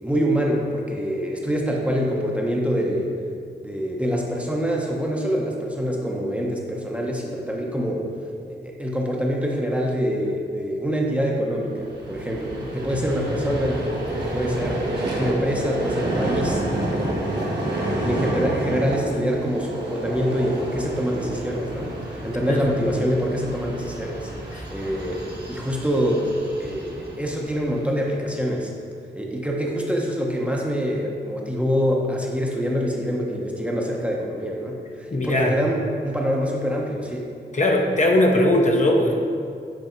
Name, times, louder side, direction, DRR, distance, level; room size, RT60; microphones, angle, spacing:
voice 1, 0.0-3.1 3.6-8.1 8.5-13.8 14.3-14.9 15.1-16.6 17.1-25.2 25.5-26.3 26.6-28.7 29.1-37.3, equal, 5° right, -2 dB, 0.8 m, -25 dB
Vehicle, 11.7-28.0, right 1 dB, 70° right, 1.3 m, -29 dB
voice 2, 35.1-35.5 37.5-39.1, left 1 dB, 40° left, 0 dB, 0.8 m, -19 dB
8.0 x 3.4 x 4.4 m, 2.3 s
wide cardioid pair, 75°, 19 cm